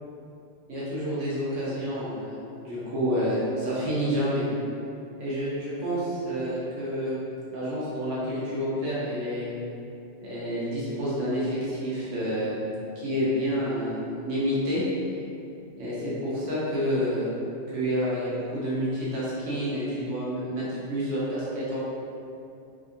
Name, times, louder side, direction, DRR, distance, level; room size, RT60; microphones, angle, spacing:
voice 1, 0.7-2.4 2.6-4.4 5.2-7.2 7.5-9.6 10.2-12.6 13.0-14.8 15.8-17.3 17.7-21.8, equal, 85° right, -8 dB, 1.1 m, -29 dB
2.8 x 2.5 x 2.6 m, 2.6 s
omnidirectional pair, 1.2 m